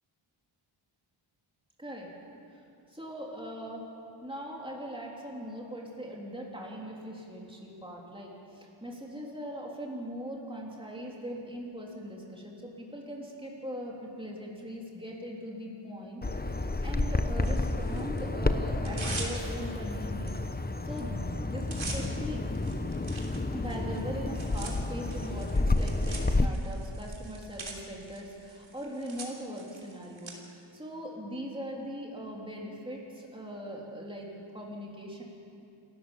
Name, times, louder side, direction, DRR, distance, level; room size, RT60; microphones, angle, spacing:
voice 1, 1.8-2.1 2.5-2.6 2.9-3.8 4.2-22.4 23.5-35.2, equal, 10° right, -2 dB, 3.5 m, -40 dB
Bird vocalization bird call bird song, 16.2-26.5, left 2 dB, 20° left, 0.8 m, -30 dB
Tearing, 17.4-18.2 18.7-19.8 20.3-20.4 20.7-21.0 21.3-30.3, right 3 dB, 70° right, 3.3 m, -44 dB
28.5 x 13.5 x 7.3 m, 2.7 s
wide cardioid pair, 95°, 50 cm